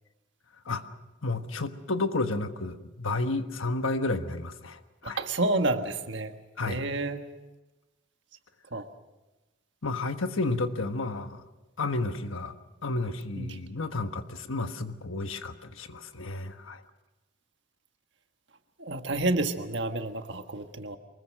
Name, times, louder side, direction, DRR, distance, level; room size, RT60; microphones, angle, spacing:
voice 1, 1.2-5.2 6.6-6.8 9.8-11.4 11.8-12.5 12.8-16.8, left 2 dB, 90° left, 8 dB, 1.4 m, -31 dB
voice 2, 5.0-6.3 6.6-7.2 8.7-8.9 13.4-13.6 18.8-21.0, right 2 dB, 65° right, 7 dB, 1.5 m, -29 dB
24.0 x 21.0 x 6.5 m, 1.1 s
head